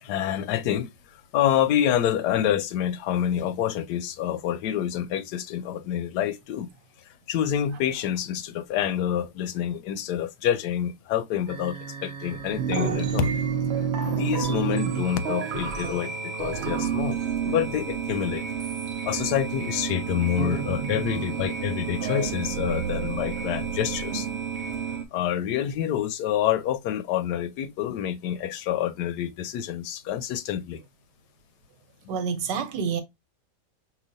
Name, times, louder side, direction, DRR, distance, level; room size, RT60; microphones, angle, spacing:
voice 1, 0.0-6.7 7.3-13.4 13.8-18.4 19.0-24.3 25.1-30.8 32.0-32.2, left 10 dB, 75° left, 1.1 m, -27 dB
sound 1, 11.5-25.0, right 7 dB, 65° right, 0.6 m, -30 dB
voice 2, 32.1-33.0, right 6 dB, 85° right, 1.5 m, -28 dB
4.8 x 2.8 x 2.5 m
omnidirectional pair, 1.8 m